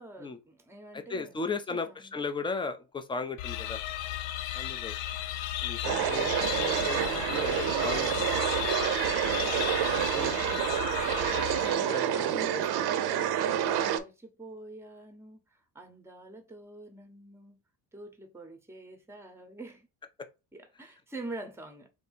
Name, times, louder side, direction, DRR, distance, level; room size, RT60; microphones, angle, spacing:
voice 1, 0.0-2.2 5.8-6.3 8.7-11.2 11.5-13.3 13.6-17.6 17.9-19.9 20.5-21.9, right 2 dB, 5° right, 0.8 m, -46 dB
voice 2, 0.9-3.8 4.5-5.0 5.6-8.3 10.1-10.3 11.8-12.6, left 4 dB, 10° left, 0.4 m, -36 dB
sound 1, 3.4-12.1, left 12 dB, 80° left, 0.5 m, -35 dB
sound 2, 5.8-14.0, right 10 dB, 60° right, 0.6 m, -28 dB
3.6 x 2.7 x 4.1 m
cardioid pair, 125°, 44 cm